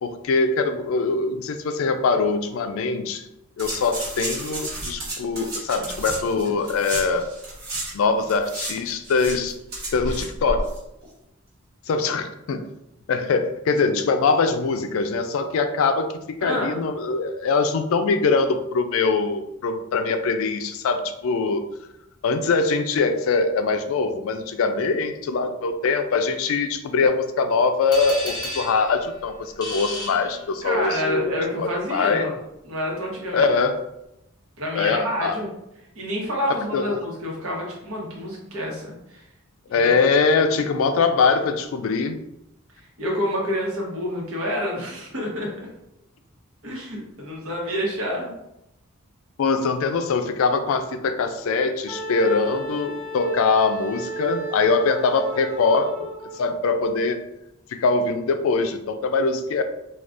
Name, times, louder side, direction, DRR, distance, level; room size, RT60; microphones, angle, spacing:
voice 1, 0.0-3.2 3.6-7.3 7.9-9.5 9.9-10.7 11.9-12.6 13.1-16.1 16.4-21.6 22.2-32.3 33.3-33.8 34.7-35.4 36.5-37.0 39.7-42.2 49.4-57.2 57.7-59.6, left 4 dB, 70° left, 8 dB, 0.3 m, -22 dB
sound 1, 3.6-7.9 8.2-10.8 11.0-11.1, right 1 dB, 45° right, 1.1 m, -32 dB
voice 2, 16.4-16.8 30.6-32.3 32.6-33.5 34.6-35.5 35.9-39.2 39.7-40.0 42.8-45.5 46.6-48.3, equal, 70° right, -2 dB, 1.0 m, -28 dB
sound 2, 27.9-30.9, left 1 dB, 20° left, 0.6 m, -34 dB
Wind instrument woodwind instrument, 51.9-56.5, right 2 dB, 25° right, 0.8 m, -34 dB
3.4 x 2.3 x 2.5 m, 0.84 s
head